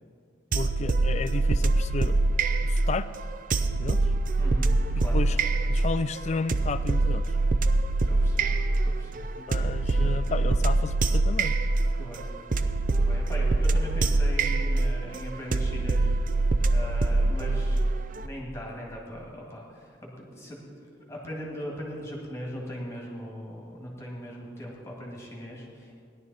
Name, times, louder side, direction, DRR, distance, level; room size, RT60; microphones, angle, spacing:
voice 1, 0.5-2.2 2.6-3.1 3.8-4.0 5.1-5.4 5.7-7.2 9.4-11.6, left 4 dB, 35° left, 14 dB, 0.3 m, -32 dB
sound 1, 0.5-18.3, right 2 dB, 45° right, 0.5 m, -24 dB
voice 2, 4.4-5.2 8.0-9.3 9.8-10.2 11.9-12.3 12.9-16.2 16.7-26.0, equal, 15° left, -2 dB, 1.8 m, -40 dB
17.0 x 11.0 x 4.1 m, 2.3 s
head